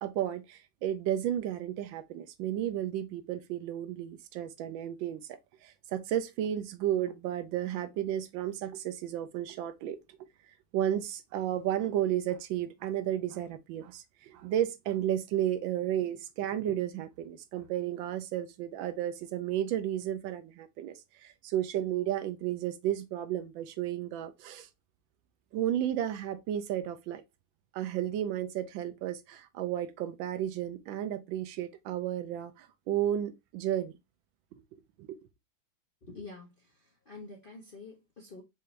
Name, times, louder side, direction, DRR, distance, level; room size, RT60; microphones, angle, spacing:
voice 1, 0.0-10.0 10.7-24.7 25.5-27.2 27.7-33.9 35.0-35.2, right 11 dB, 75° right, 1.3 m, -33 dB
voice 2, 36.0-38.4, left 3 dB, 70° left, 0.5 m, -47 dB
5.7 x 2.6 x 3.1 m
omnidirectional pair, 2.3 m